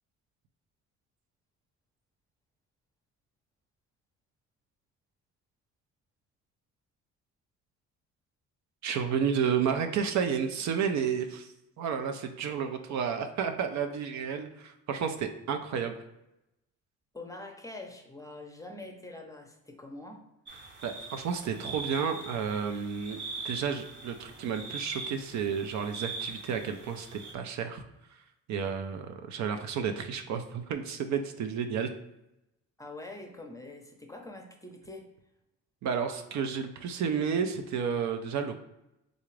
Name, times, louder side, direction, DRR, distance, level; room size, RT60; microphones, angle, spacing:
voice 1, 8.8-16.0 20.8-23.2 23.4-27.8 28.5-31.9 35.8-38.6, right 7 dB, 70° right, 6 dB, 0.5 m, -31 dB
voice 2, 17.1-20.2 32.8-35.1, left 2 dB, 10° left, 2 dB, 0.6 m, -44 dB
cricket night ambience lebanon pine forest, 20.5-27.3, right 4 dB, 40° right, 0.8 m, -41 dB
3.8 x 2.4 x 3.1 m, 0.89 s
cardioid pair, 90°, 30 cm